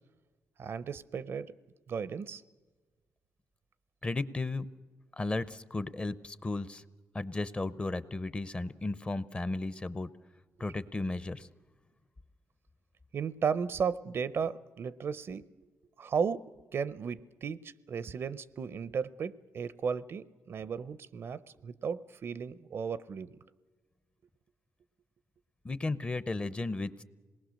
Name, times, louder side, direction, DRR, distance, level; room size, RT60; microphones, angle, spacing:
voice 1, 0.6-1.5 1.9-2.4 13.1-15.4 16.0-16.4 16.7-23.4, right 6 dB, 55° right, 17 dB, 0.6 m, -35 dB
voice 2, 4.0-4.7 5.1-6.8 7.1-10.1 10.6-11.5 25.6-27.0, left 2 dB, 25° left, 15 dB, 0.7 m, -34 dB
26.5 x 19.5 x 6.4 m, 1.3 s
cardioid pair, 90°, 5 cm